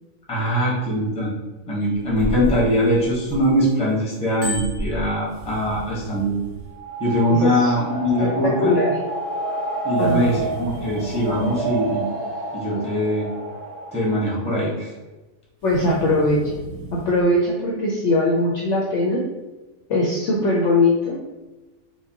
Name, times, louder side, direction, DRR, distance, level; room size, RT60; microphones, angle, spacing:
voice 1, 0.3-1.3 1.7-6.4 7.0-8.8 9.8-12.1 12.5-13.3 13.9-14.9, equal, 5° left, -4 dB, 0.5 m, -22 dB
Bicycle bell, 1.8-3.7 4.1-5.8 6.4-6.6, equal, 45° right, 0.8 m, -30 dB
Blowing into Mic, 5.3-6.8 10.0-11.8 15.6-17.2, right 1 dB, 90° right, 1.2 m, -39 dB
sound 1, 6.6-14.3, right 2 dB, 70° right, 1.4 m, -29 dB
voice 2, 7.3-7.7 8.2-9.0 10.0-10.3 15.6-16.6 16.9-19.2 19.9-21.2, left 1 dB, 65° left, -3 dB, 0.7 m, -20 dB
4.7 x 2.0 x 2.8 m, 1.1 s
omnidirectional pair, 1.7 m